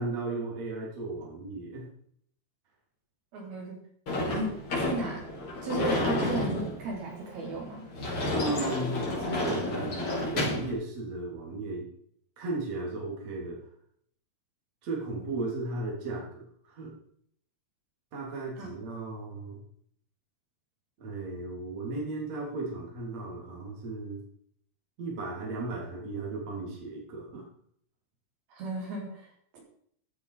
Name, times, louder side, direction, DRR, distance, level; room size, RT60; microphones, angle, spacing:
voice 1, 0.0-1.9 8.3-11.9 12.4-13.6 14.8-16.9 18.1-19.6 21.0-24.2 25.0-27.4, right 2 dB, 45° right, -2 dB, 4.5 m, -35 dB
voice 2, 3.3-3.8 4.2-5.3 5.6-7.9 18.6-18.7 28.5-29.6, right 1 dB, 85° right, -2 dB, 5.9 m, -35 dB
Sliding door / Slam, 4.1-10.7, left 1 dB, 35° left, 5.7 m, -31 dB
15.0 x 10.0 x 5.1 m, 0.65 s
omnidirectional pair, 4.3 m